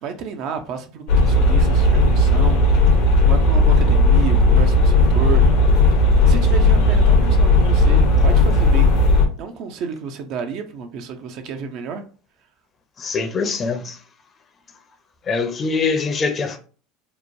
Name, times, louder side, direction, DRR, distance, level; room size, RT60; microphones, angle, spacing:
voice 1, 0.0-2.6 3.2-5.4 6.3-8.9 9.4-12.0, right 6 dB, 60° right, 0.5 m, -31 dB
sound 1, 1.1-9.3, left 2 dB, 70° left, 0.7 m, -15 dB
voice 2, 13.0-14.0 15.3-16.6, left 4 dB, 35° left, 0.6 m, -23 dB
2.9 x 2.1 x 2.6 m
hypercardioid pair, 85°, 0 cm